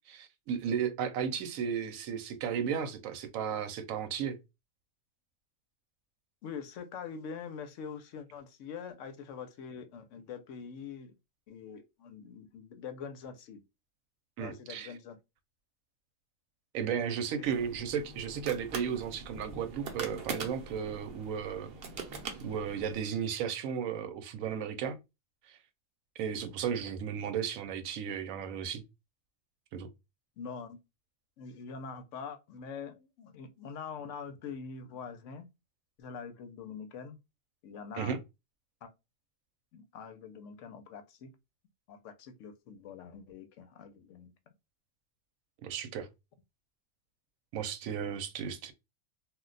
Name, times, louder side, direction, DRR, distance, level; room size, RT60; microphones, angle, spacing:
voice 1, 0.1-4.4 14.4-14.9 16.7-21.7 22.4-25.0 25.5-25.6 26.2-28.8 29.7-29.9 37.9-38.2 45.6-46.1 47.5-48.7, right 7 dB, 85° right, 1.0 m, -34 dB
voice 2, 6.4-11.1 11.5-13.6 14.4-15.2 17.3-17.5 30.4-30.8 31.4-35.5 36.0-37.2 37.6-38.2 38.8-38.9 39.7-41.3 41.9-44.3, left 6 dB, 75° left, 0.9 m, -44 dB
sound 1, 17.4-23.0, right 4 dB, 55° right, 0.8 m, -43 dB
2.4 x 2.1 x 3.8 m
omnidirectional pair, 1.4 m